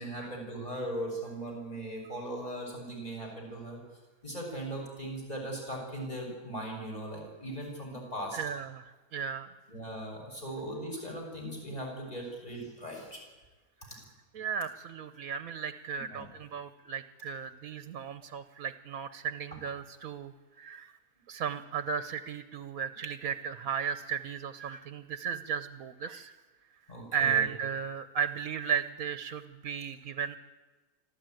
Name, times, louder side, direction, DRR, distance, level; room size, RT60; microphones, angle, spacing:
voice 1, 0.0-3.8 4.2-8.4 9.7-13.2 15.9-16.3 26.9-27.5, right 1 dB, 25° left, 0 dB, 6.4 m, -39 dB
voice 2, 8.3-9.5 14.3-20.3 20.6-20.9 21.3-26.3 27.1-30.4, right 7 dB, 75° right, 11 dB, 1.3 m, -35 dB
26.0 x 14.5 x 9.1 m, 1.2 s
omnidirectional pair, 1.5 m